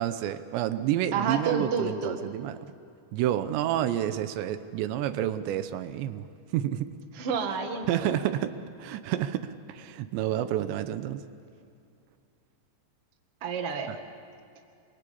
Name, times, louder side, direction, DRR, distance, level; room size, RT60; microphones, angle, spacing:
voice 1, 0.0-2.6 3.1-6.3 6.5-7.0 7.9-8.5 8.8-11.2 13.9-14.0, right 12 dB, 85° right, 11 dB, 3.1 m, -29 dB
voice 2, 1.1-2.2 7.1-8.1 13.4-13.9, right 5 dB, 45° right, 4 dB, 2.1 m, -29 dB
27.0 x 23.0 x 8.6 m, 2.4 s
omnidirectional pair, 5.0 m